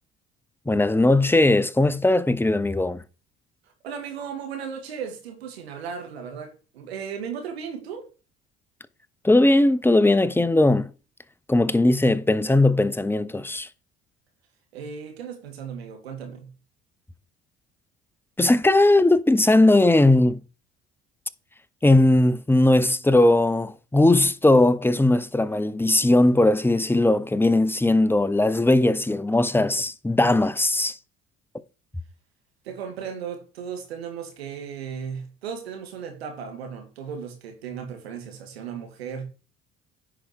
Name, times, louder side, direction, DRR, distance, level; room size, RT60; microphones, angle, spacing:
voice 1, 0.7-3.0 9.2-10.9 11.5-13.7 18.4-20.4 21.8-30.9, left 2 dB, 5° left, 0.8 m, -19 dB
voice 2, 3.8-8.1 14.7-16.5 32.6-39.3, right 7 dB, 90° right, 2.1 m, -36 dB
10.0 x 5.0 x 4.7 m
hypercardioid pair, 60°, 30 cm